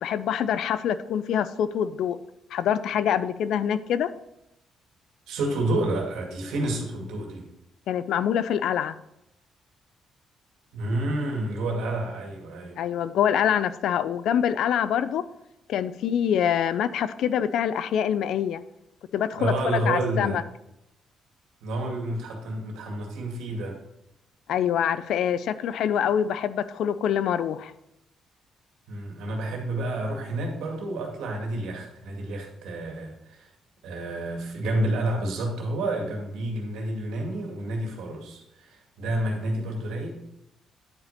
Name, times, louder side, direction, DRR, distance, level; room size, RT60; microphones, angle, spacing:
voice 1, 0.0-2.2 2.5-4.1 7.9-8.9 12.8-15.2 15.7-18.6 19.1-20.4 24.5-27.7, left 9 dB, 75° left, 15 dB, 0.4 m, -25 dB
voice 2, 5.3-7.4 10.7-12.8 19.4-20.4 21.6-23.8 28.9-33.5 33.8-40.2, right 1 dB, 85° right, 1 dB, 2.1 m, -29 dB
9.9 x 5.1 x 4.2 m, 0.85 s
cardioid pair, 90°, 0 cm